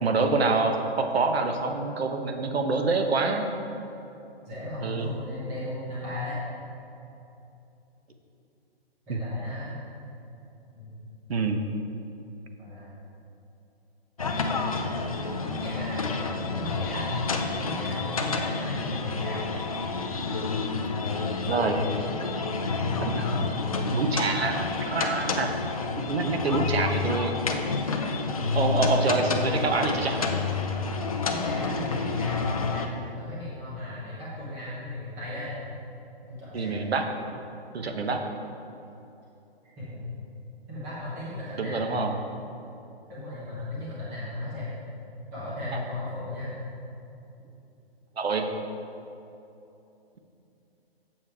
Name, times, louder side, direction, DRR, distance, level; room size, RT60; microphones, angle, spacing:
voice 1, 0.0-3.6 4.8-5.1 9.1-9.2 11.3-11.6 21.5-21.8 23.0-23.5 23.9-25.5 26.0-27.4 28.5-30.3 36.5-37.0 37.7-38.2 41.6-42.1 48.2-48.5, right 3 dB, 75° right, 5 dB, 1.0 m, -26 dB
voice 2, 4.4-6.4 9.1-9.7 10.7-11.0 12.6-12.9 14.3-15.0 15.4-16.0 16.4-17.2 17.6-19.4 23.3-23.4 26.4-26.6 31.3-35.6 36.3-36.8 39.8-40.1 40.7-41.8 43.1-44.7 45.3-46.5, left 2 dB, 5° right, -9 dB, 0.9 m, -36 dB
sound 1, 14.2-32.9, left 3 dB, 35° left, 0.5 m, -29 dB
7.4 x 7.4 x 4.7 m, 2.8 s
hypercardioid pair, 175°, 32 cm